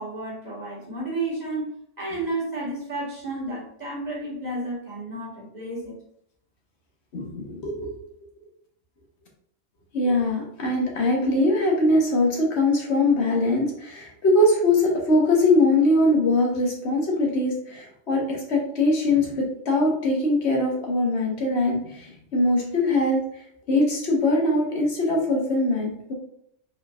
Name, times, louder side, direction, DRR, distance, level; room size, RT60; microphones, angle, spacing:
voice 1, 0.0-1.7 2.0-5.9, right 2 dB, 35° right, -6 dB, 2.0 m, -31 dB
voice 2, 7.1-7.9 9.9-23.2 23.7-26.1, left 2 dB, 60° left, -1 dB, 1.5 m, -22 dB
5.1 x 4.0 x 2.5 m, 0.71 s
omnidirectional pair, 1.3 m